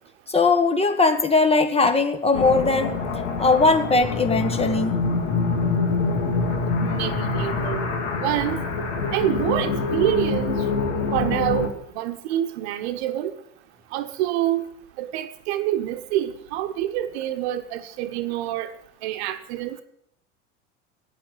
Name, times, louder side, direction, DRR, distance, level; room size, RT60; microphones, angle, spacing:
voice 1, 0.3-2.9 3.4-5.0, left 3 dB, 15° left, 8 dB, 1.4 m, -19 dB
sound 1, 2.3-11.7, left 4 dB, 70° left, 2.4 m, -25 dB
voice 2, 6.8-7.9 8.2-8.6 9.1-10.6 11.1-11.7 11.9-13.3 13.9-14.7 15.0-18.7 19.0-19.8, right 13 dB, 60° right, 10 dB, 1.2 m, -26 dB
9.5 x 8.5 x 9.5 m, 0.73 s
figure-of-eight pair, 80°, 37 cm